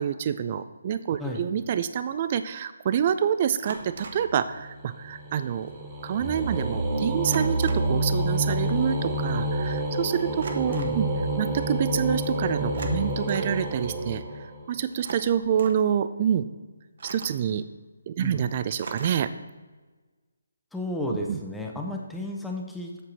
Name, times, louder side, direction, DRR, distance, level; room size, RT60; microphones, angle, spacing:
voice 1, 0.0-5.7 6.0-11.1 11.4-16.4 17.0-17.6 18.1-19.3 21.3-21.4, right 8 dB, 35° right, 12 dB, 0.3 m, -27 dB
sound 1, 1.5-1.7 3.6-4.3 5.7-5.8 6.0-6.3 7.2-8.0 10.4-11.0 12.6-13.6 14.9-15.8 17.0-17.5 18.8-19.4, right 3 dB, 60° right, 1.0 m, -41 dB
sound 2, 3.9-14.8, right 1 dB, 20° right, 1.4 m, -29 dB
voice 2, 10.7-11.0 18.2-18.4 20.7-23.0, left 1 dB, 5° left, 0 dB, 0.7 m, -33 dB
8.1 x 6.0 x 4.1 m, 1.3 s
figure-of-eight pair, 150°, 0 cm